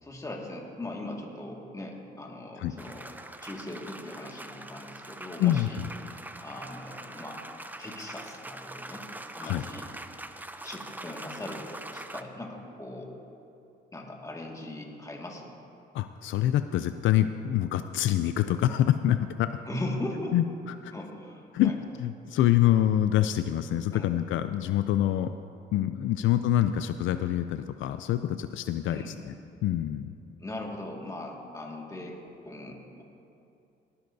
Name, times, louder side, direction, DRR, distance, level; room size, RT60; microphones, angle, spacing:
voice 1, 0.0-3.1 3.4-5.8 6.1-7.4 7.8-9.1 9.3-9.9 10.6-13.1 13.9-15.5 19.6-20.4 20.9-21.8 23.9-24.1 26.2-26.3 28.9-29.2 30.4-33.0, left 1 dB, 15° left, 0 dB, 1.9 m, -39 dB
sound 1, 2.8-12.2, right 2 dB, 10° right, 0.5 m, -43 dB
voice 2, 5.4-5.9 9.4-9.6 15.9-19.5 20.3-20.4 20.8-20.9 21.5-21.7 22.0-25.3 25.7-29.3 29.6-30.1, left 12 dB, 75° left, 10 dB, 0.4 m, -26 dB
18.5 x 11.5 x 2.7 m, 2.7 s
cardioid pair, 90°, 20 cm